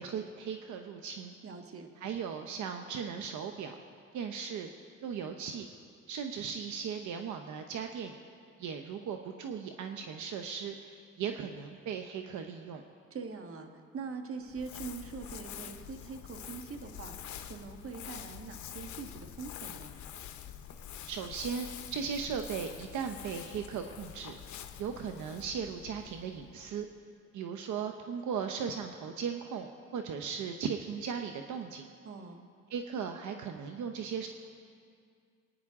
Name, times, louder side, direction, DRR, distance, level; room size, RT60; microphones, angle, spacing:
voice 1, 0.0-1.3 2.0-3.7 4.1-4.7 5.0-5.7 6.1-8.1 8.6-12.8 21.1-26.9 27.3-31.9 32.7-34.3, right 7 dB, 75° right, 5 dB, 0.8 m, -37 dB
voice 2, 1.4-1.9 13.1-19.9 32.0-32.5, right 4 dB, 45° right, 5 dB, 1.4 m, -43 dB
Crumpling crinkling, 14.5-26.9, left 10 dB, 75° left, 0.8 m, -46 dB
24.5 x 9.7 x 3.6 m, 2.3 s
cardioid pair, 90°, 30 cm